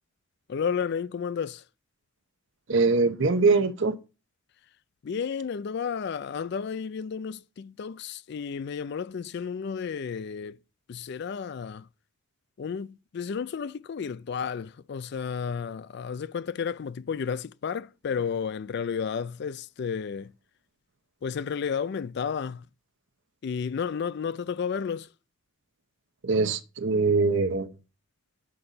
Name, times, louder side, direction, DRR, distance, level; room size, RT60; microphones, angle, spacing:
voice 1, 0.5-1.6 5.0-10.6 10.9-11.9 12.6-20.3 21.2-22.6 23.4-25.1, left 6 dB, 55° left, 0.3 m, -32 dB
voice 2, 2.7-3.9 26.2-27.7, right 4 dB, 65° right, 0.7 m, -23 dB
7.8 x 3.9 x 5.5 m
head